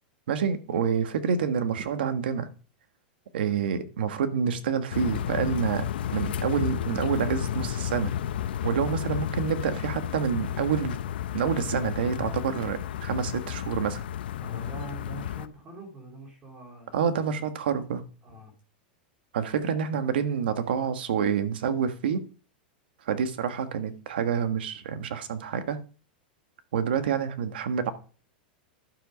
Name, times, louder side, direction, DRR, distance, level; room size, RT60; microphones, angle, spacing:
voice 1, 0.3-2.5 3.3-8.1 8.6-11.0 11.3-14.0 16.9-18.0 19.3-22.2 23.0-25.8 26.7-27.9, right 7 dB, 80° right, 9 dB, 1.5 m, -28 dB
sound 1, 4.9-15.5, left 10 dB, 80° left, 0.8 m, -32 dB
voice 2, 14.4-17.5 18.2-18.5, right 1 dB, 25° right, 1 dB, 3.0 m, -44 dB
11.5 x 7.4 x 5.2 m, 0.38 s
supercardioid pair, 160°, 5 cm